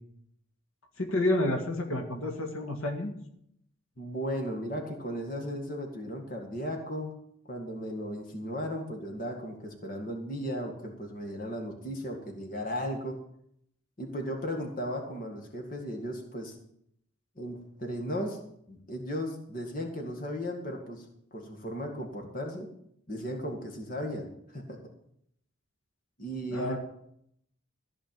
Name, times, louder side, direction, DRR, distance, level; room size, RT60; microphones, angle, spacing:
voice 1, 1.0-3.1 26.5-26.8, left 1 dB, 85° left, 2 dB, 1.9 m, -29 dB
voice 2, 4.0-7.1 7.5-13.2 14.0-16.6 17.4-18.4 18.7-21.1 21.3-22.7 23.1-24.8 26.2-26.8, equal, 40° left, 2 dB, 2.0 m, -36 dB
14.5 x 5.1 x 8.9 m, 0.72 s
head